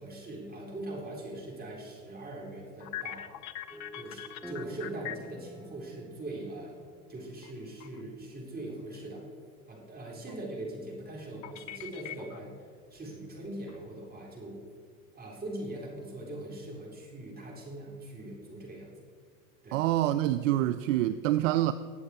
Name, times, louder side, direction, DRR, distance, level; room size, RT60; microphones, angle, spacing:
voice 1, 0.0-3.3 3.9-6.8 7.1-9.2 9.7-14.6 15.1-18.9 19.6-19.8, right 1 dB, 20° right, 4.0 m, -41 dB
sound 1, 2.7-5.5 7.4-7.5 7.8-8.2 11.4-12.6 13.0-13.1 13.7-14.1, left 13 dB, 55° left, 0.8 m, -42 dB
sound 2, 3.7-8.1, right 1 dB, ahead, 0.3 m, -50 dB
voice 2, 19.7-21.7, right 14 dB, 60° right, 0.6 m, -26 dB
20.5 x 7.7 x 4.3 m
hypercardioid pair, 100°, 45 cm